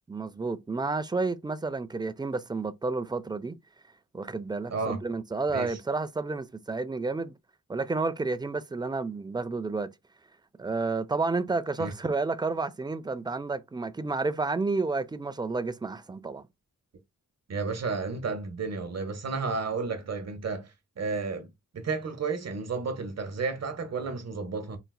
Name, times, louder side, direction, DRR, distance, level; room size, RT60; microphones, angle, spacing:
voice 1, 0.1-3.6 4.1-7.4 7.7-9.9 10.6-16.4, right 3 dB, 15° right, 0.3 m, -30 dB
voice 2, 4.7-5.0 5.5-5.8 11.8-11.9 17.5-20.7 21.0-24.8, right 4 dB, 50° right, 0.9 m, -32 dB
4.0 x 2.3 x 2.3 m
wide cardioid pair, 100°, 33 cm